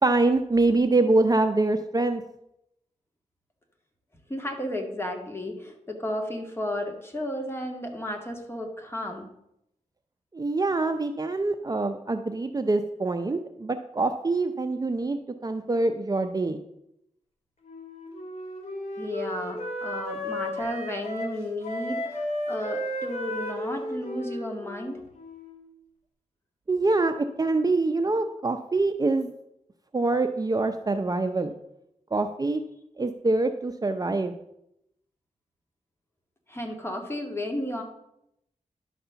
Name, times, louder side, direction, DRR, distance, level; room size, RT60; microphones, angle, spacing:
voice 1, 0.0-2.2 10.3-16.6 26.7-29.3 29.9-31.5 32.1-32.6 33.0-34.3, right 2 dB, 30° right, 7 dB, 0.6 m, -25 dB
voice 2, 4.3-9.3 19.0-25.0 36.5-37.8, left 1 dB, 20° left, 2 dB, 1.9 m, -33 dB
Wind instrument woodwind instrument, 17.6-25.6, left 1 dB, 55° left, 2.9 m, -34 dB
11.0 x 4.2 x 6.8 m, 0.81 s
wide cardioid pair, 75°, 13 cm